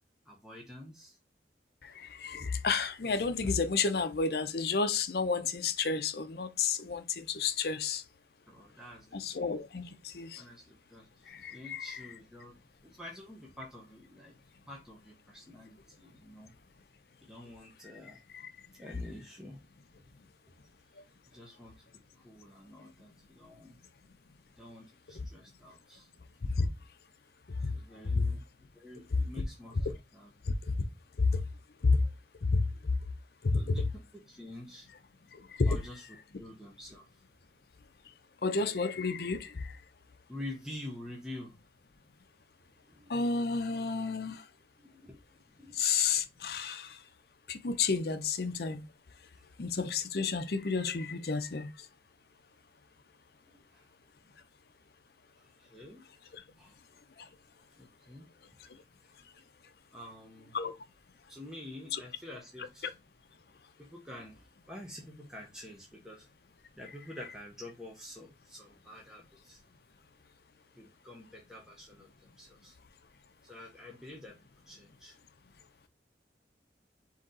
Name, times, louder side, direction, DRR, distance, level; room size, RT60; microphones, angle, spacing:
voice 1, 0.2-1.2 8.5-9.5 10.4-12.5 12.8-14.3 14.7-16.5 17.2-18.2 18.7-19.6 21.3-21.7 22.2-23.8 24.6-26.1 27.6-28.4 28.7-30.3 33.5-33.8 34.1-34.9 35.7-36.0 36.4-37.2 40.3-41.6 42.7-43.2 44.8-45.2 45.6-45.8 49.3-49.4 53.5-53.9 55.4-56.0 56.6-56.8 57.8-58.3 58.6-59.1 59.9-60.6 61.3-62.9 63.8-66.3 66.7-69.6 70.7-72.8 73.4-74.4 74.7-75.2, left 1 dB, 5° right, 0.8 m, -48 dB
voice 2, 2.2-8.0 9.1-10.4 11.3-12.1 26.6-26.7 31.8-32.0 32.5-32.6 35.6-35.8 38.4-39.5 43.1-44.4 45.7-46.9 47.5-48.8 49.6-51.7 60.5-60.7 61.9-62.0 62.6-62.7, left 4 dB, 60° left, 0.6 m, -31 dB
4.0 x 2.9 x 3.8 m
head